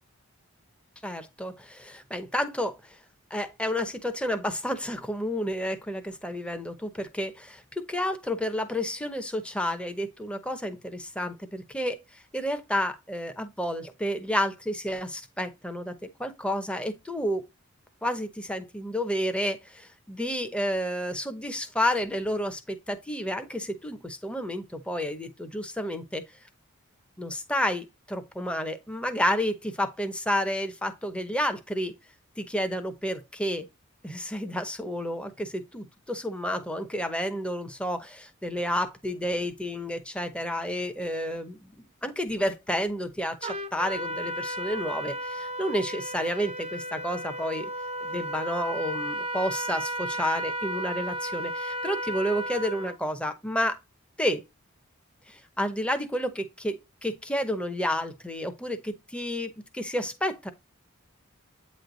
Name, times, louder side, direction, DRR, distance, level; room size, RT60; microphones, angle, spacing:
voice 1, 1.0-2.8 3.3-12.0 12.3-15.9 16.2-17.4 18.0-26.2 27.2-31.9 32.4-33.7 34.0-41.7 42.0-47.7 48.0-53.8 54.2-54.4 55.3-60.5, equal, 5° left, 0.8 m, -30 dB
Trumpet, 43.4-53.0, right 1 dB, 25° right, 0.6 m, -34 dB
8.7 x 3.2 x 3.9 m
head